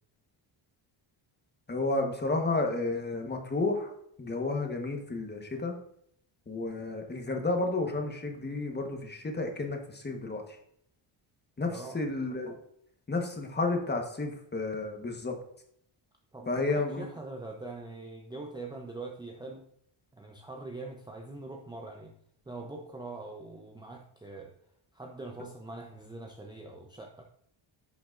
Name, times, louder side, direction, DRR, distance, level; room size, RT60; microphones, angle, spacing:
voice 1, 1.7-3.9 4.2-5.8 6.5-10.4 11.6-12.5 13.1-15.4 16.5-17.0, left 2 dB, 20° left, 3 dB, 1.3 m, -31 dB
voice 2, 11.6-12.0 16.3-19.7 20.1-22.1 22.5-24.5 24.9-27.2, right 2 dB, 10° right, 0 dB, 0.6 m, -43 dB
10.5 x 5.9 x 2.6 m, 0.70 s
cardioid pair, 115°, 49 cm